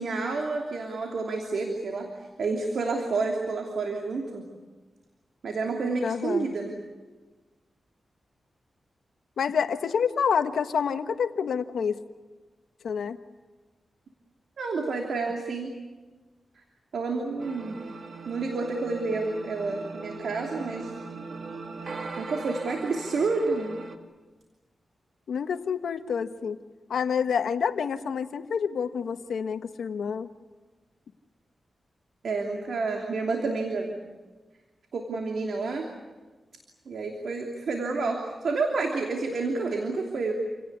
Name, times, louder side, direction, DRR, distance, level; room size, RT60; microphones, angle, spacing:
voice 1, 0.0-4.4 5.4-6.8 14.6-15.7 16.9-17.8 18.3-20.9 22.2-23.8 32.2-33.9 34.9-35.9 36.9-40.3, right 3 dB, 80° right, 2 dB, 3.0 m, -29 dB
voice 2, 6.0-6.5 9.4-12.0 12.8-13.2 25.3-26.6 26.9-30.3, left 6 dB, 90° left, 9 dB, 1.3 m, -28 dB
sound 1, 17.4-24.0, right 4 dB, 65° right, 2.4 m, -40 dB
28.5 x 18.0 x 9.6 m, 1.3 s
cardioid pair, 70°, 0 cm